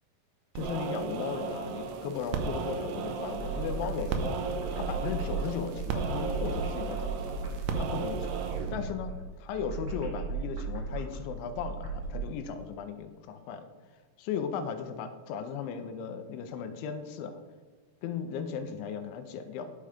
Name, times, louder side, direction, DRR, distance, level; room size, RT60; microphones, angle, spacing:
sound 1, 0.5-8.9, right 5 dB, 75° right, 2.8 m, -35 dB
voice 1, 0.6-7.4 7.8-8.4 8.7-13.7 14.2-17.4 18.0-19.7, left 7 dB, 85° left, 7 dB, 3.1 m, -36 dB
sound 2, 3.1-12.2, right 4 dB, 30° right, 2.6 m, -36 dB
10.5 x 7.0 x 5.0 m, 1.4 s
omnidirectional pair, 5.2 m